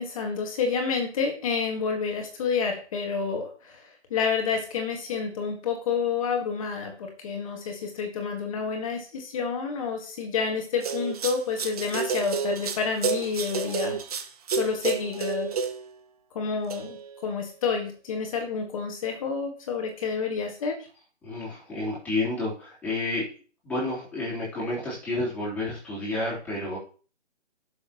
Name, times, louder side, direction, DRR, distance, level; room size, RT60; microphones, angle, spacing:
voice 1, 0.0-3.8 4.1-14.0 14.6-15.5 16.3-20.7, left 5 dB, 30° left, 3 dB, 1.7 m, -29 dB
sound 1, 10.8-15.9 16.7-17.2, right 6 dB, 35° right, 0.9 m, -30 dB
voice 2, 21.2-23.3 23.6-26.8, left 2 dB, 5° left, -8 dB, 3.5 m, -30 dB
11.0 x 6.5 x 3.0 m, 0.39 s
hypercardioid pair, 155°, 35 cm